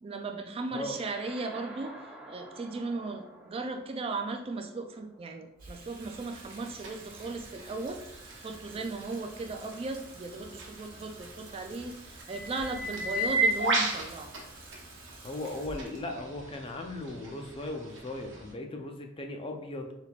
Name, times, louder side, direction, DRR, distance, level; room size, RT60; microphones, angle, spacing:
voice 1, 0.0-8.0 8.4-14.3, right 3 dB, 30° right, 5 dB, 0.3 m, -37 dB
sound 1, 0.9-5.7, right 1 dB, 5° right, 0.8 m, -50 dB
Water tap faucet / Sink (filling or washing), 5.6-17.9, right 2 dB, 50° right, 1.0 m, -51 dB
sound 2, 6.0-18.5, right 2 dB, 70° right, 0.9 m, -36 dB
voice 2, 15.2-19.9, left 2 dB, 30° left, 4 dB, 0.5 m, -37 dB
4.6 x 3.4 x 2.3 m, 0.85 s
head